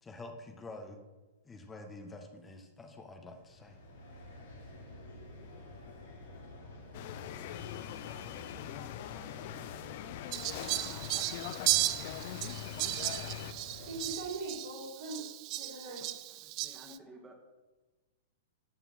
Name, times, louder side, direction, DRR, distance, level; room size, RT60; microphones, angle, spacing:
voice 1, 0.0-1.0 1.4-3.8, left 2 dB, 15° left, 4 dB, 1.6 m, -47 dB
sound 1, 3.3-14.1, left 2 dB, 65° left, 2.8 m, -51 dB
sound 2, 6.9-13.5, left 11 dB, 50° left, 0.7 m, -42 dB
voice 2, 10.0-11.1 16.0-17.6, right 1 dB, 15° right, 1 dB, 2.2 m, -56 dB
Fowl, 10.3-17.0, right 16 dB, 40° right, 0.5 m, -35 dB
voice 3, 13.8-16.1, right 2 dB, 60° right, -7 dB, 3.9 m, -41 dB
13.5 x 5.7 x 5.9 m, 1.2 s
figure-of-eight pair, 105°, 0 cm